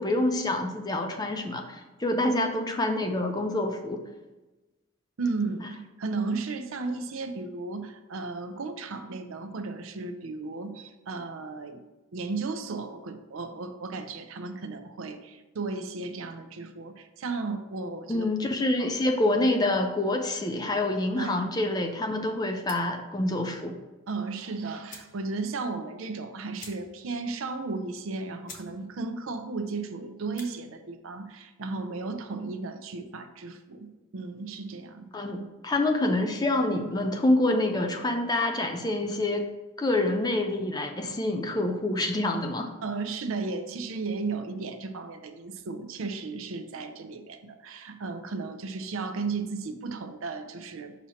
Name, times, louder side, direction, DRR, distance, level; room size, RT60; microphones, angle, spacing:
voice 1, 0.0-4.0 18.1-23.7 35.1-39.5 39.8-42.7, left 2 dB, 20° left, 5 dB, 0.4 m, -27 dB
voice 2, 5.2-5.7 6.0-11.8 12.1-18.3 18.8-18.9 21.2-21.4 24.1-35.1 42.8-50.9, right 3 dB, 80° right, 8 dB, 0.5 m, -34 dB
sound 1, 22.6-23.0 24.4-24.5 24.8-25.2 25.6-25.7 25.9-26.0 26.5-27.1 27.5-27.6 28.1-28.2 28.4-28.7 29.1-29.4 30.2-30.5, left 4 dB, 40° left, 0.8 m, -47 dB
6.1 x 2.9 x 5.6 m, 1.1 s
head